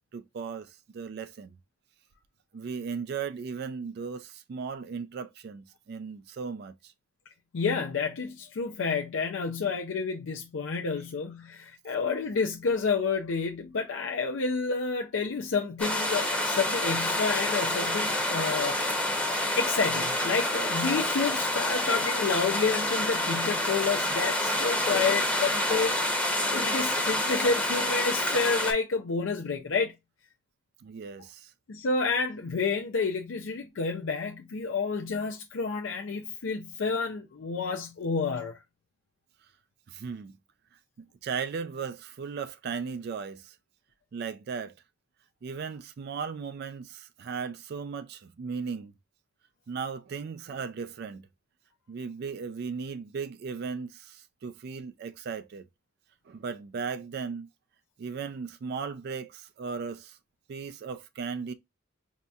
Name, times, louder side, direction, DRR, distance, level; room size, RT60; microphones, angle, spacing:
voice 1, 0.0-1.6 2.5-6.9 26.6-26.7 30.8-31.5 39.9-40.3 41.0-43.6 44.1-44.7 45.4-48.9 49.7-51.3 51.9-55.7 56.3-57.5 58.0-60.2 60.5-61.5, right 5 dB, 50° right, 0.3 m, -37 dB
voice 2, 7.5-18.8 19.5-26.0 26.2-29.9 31.7-38.6, left 4 dB, 70° left, 0.5 m, -29 dB
sound 1, 15.8-28.7, left 1 dB, 5° left, 0.8 m, -28 dB
5.2 x 2.7 x 2.3 m
head